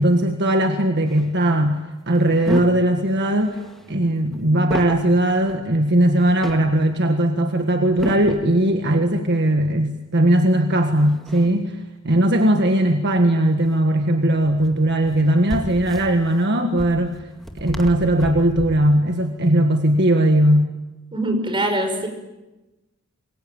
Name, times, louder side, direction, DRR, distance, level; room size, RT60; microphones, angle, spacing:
voice 1, 0.0-1.8 2.1-3.6 3.9-11.8 12.0-17.1 17.6-20.7, right 1 dB, 55° right, 5 dB, 1.7 m, -19 dB
sound 1, 1.1-1.3 2.1-3.0 3.2-5.1 5.4-5.7 6.1-6.8 7.6-8.6 10.9-11.8 13.6-13.8 14.3-19.0, equal, ahead, 2.1 m, -34 dB
voice 2, 21.1-22.1, right 1 dB, 25° right, 5 dB, 5.5 m, -23 dB
27.0 x 22.5 x 8.9 m, 1.1 s
head